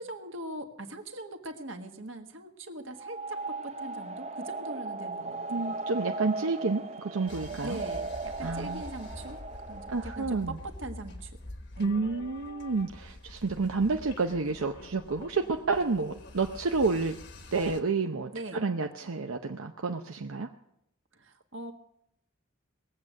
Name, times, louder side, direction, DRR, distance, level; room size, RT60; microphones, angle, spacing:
voice 1, 0.0-5.7 7.6-9.4 9.7-11.3 11.8-12.0 18.3-18.6 21.1-21.7, right 1 dB, 65° right, 5 dB, 1.6 m, -41 dB
sound 1, 2.9-10.5, right 3 dB, 30° right, 0.6 m, -37 dB
voice 2, 5.5-7.8 8.4-8.8 9.9-10.6 11.8-17.2 17.5-20.5, right 4 dB, 90° right, 4 dB, 0.8 m, -30 dB
sound 2, 7.3-17.8, left 2 dB, 55° left, 1.3 m, -46 dB
20.0 x 8.1 x 7.5 m, 0.79 s
head